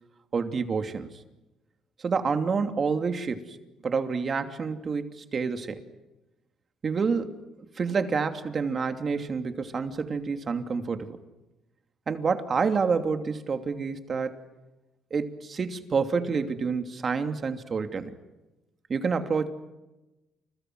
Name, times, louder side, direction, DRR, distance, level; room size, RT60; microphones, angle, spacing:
voice 1, 0.3-1.1 2.0-3.6 3.8-5.8 6.8-7.4 7.8-11.2 12.1-14.4 15.1-18.1 18.9-19.5, right 5 dB, 35° right, 7 dB, 2.8 m, -28 dB
30.0 x 30.0 x 6.3 m, 1.0 s
cardioid pair, 115°, 0 cm